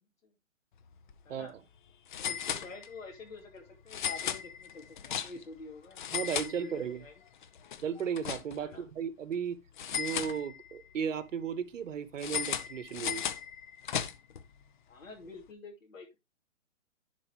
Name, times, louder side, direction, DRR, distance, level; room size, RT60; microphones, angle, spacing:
sound 1, 0.9-1.1 1.4-1.5 2.1-3.1 3.9-5.6 5.9-7.1 7.4-8.8 9.8-10.9 12.2-14.4, left 8 dB, 40° left, 0.7 m, -36 dB
voice 1, 2.2-7.1 8.6-8.9 14.9-16.2, left 3 dB, 85° left, 3.0 m, -48 dB
voice 2, 6.1-7.0 7.8-9.6 9.9-13.2, right 7 dB, 70° right, 1.2 m, -35 dB
11.0 x 4.7 x 3.0 m
hypercardioid pair, 155°, 39 cm